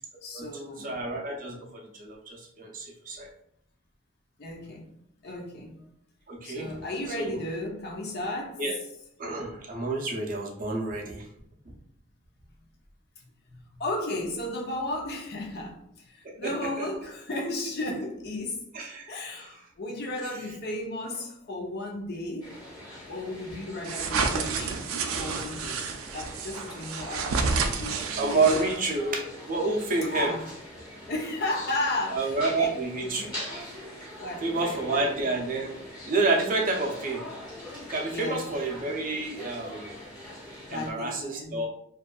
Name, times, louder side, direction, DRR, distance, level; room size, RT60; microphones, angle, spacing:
voice 1, 0.2-1.0 4.4-4.9 5.2-5.8 6.4-8.6 13.5-18.7 19.1-22.6 23.1-24.8 25.2-25.9 26.1-28.1 28.5-28.8 30.1-30.5 31.1-32.7 33.0-33.3 34.2-35.1 37.7-37.8 38.1-38.5 40.6-41.6, left 1 dB, 50° left, 0.5 m, -34 dB
voice 2, 0.8-3.3 6.3-6.7 7.2-7.4 8.6-8.7 9.2-11.2 16.2-16.9 18.7-19.1 19.4-19.5 28.2-30.3 32.1-33.3 34.4-35.8 36.1-37.2 37.9-39.9 40.7-41.7, right 3 dB, 40° right, 0.5 m, -29 dB
sound 1, 22.4-40.9, left 1 dB, 20° left, 0.9 m, -43 dB
sound 2, 23.8-29.0, right 4 dB, 90° right, 0.4 m, -30 dB
2.6 x 2.3 x 2.2 m
head